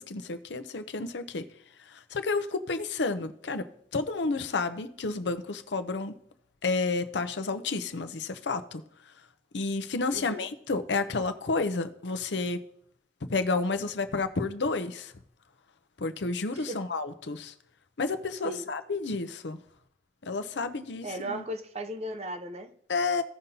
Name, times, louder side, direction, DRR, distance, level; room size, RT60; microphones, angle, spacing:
voice 1, 0.0-1.5 1.9-6.1 6.6-8.8 9.5-12.6 13.3-15.1 16.0-17.5 18.0-19.6 20.3-21.4 22.9-23.2, left 3 dB, 80° left, 0.7 m, -31 dB
voice 2, 10.1-10.5 16.5-16.9 18.4-18.7 21.0-22.7, right 1 dB, 35° right, 0.6 m, -36 dB
16.0 x 5.3 x 2.8 m
head